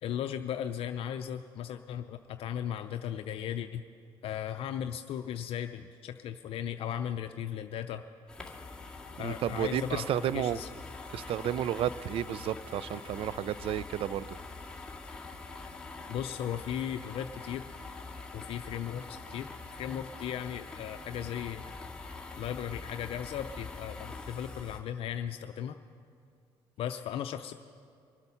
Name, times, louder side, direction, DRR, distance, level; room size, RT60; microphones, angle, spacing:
voice 1, 0.0-3.8 4.2-8.0 9.1-10.0 10.3-10.7 16.1-17.6 18.3-19.5 19.8-21.6 22.4-25.8 26.8-27.5, left 9 dB, 70° left, 8 dB, 0.5 m, -36 dB
sound 1, 8.3-24.8, left 3 dB, 10° left, 1.9 m, -44 dB
voice 2, 9.2-10.6 11.1-14.4, right 11 dB, 65° right, 18 dB, 0.5 m, -32 dB
24.0 x 8.1 x 5.7 m, 2.3 s
cardioid pair, 95°, 10 cm